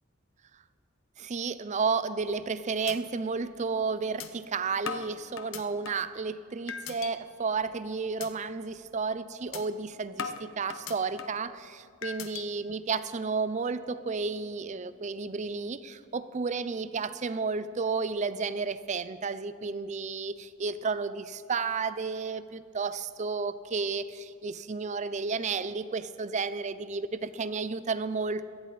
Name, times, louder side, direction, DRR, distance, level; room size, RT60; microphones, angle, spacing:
voice 1, 1.2-28.5, right 4 dB, 35° right, 14 dB, 0.5 m, -32 dB
sound 1, 2.2-2.5 2.9-3.0 3.4-3.5 4.2-4.3 4.9-6.1 6.7-7.1 7.5-7.8 8.2-8.3 8.7-8.9 9.5-9.6 10.2-11.5 12.0-12.4, left 6 dB, 75° left, 0.8 m, -38 dB
18.5 x 13.0 x 4.1 m, 2.3 s
head